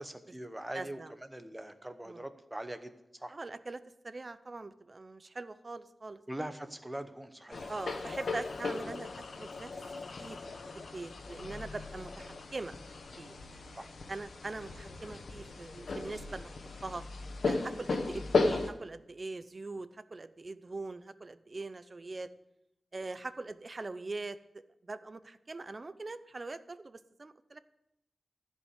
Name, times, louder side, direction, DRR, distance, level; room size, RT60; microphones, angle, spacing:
voice 1, 0.0-1.0 1.3-3.4 6.3-7.7 13.8-13.9, right 1 dB, 10° right, 9 dB, 0.9 m, -42 dB
voice 2, 0.7-1.1 2.0-2.3 3.3-6.2 7.7-9.1 9.4-12.7 13.2-13.3 14.1-16.5 16.8-17.0 17.5-22.3 22.9-27.6, right 3 dB, 35° right, 13 dB, 0.6 m, -42 dB
sound 1, 7.5-18.7, left 3 dB, 85° left, 1.3 m, -36 dB
sound 2, 7.5-13.5, left 4 dB, 65° left, 0.6 m, -46 dB
14.5 x 5.5 x 8.1 m, 0.86 s
wide cardioid pair, 120°, 0 cm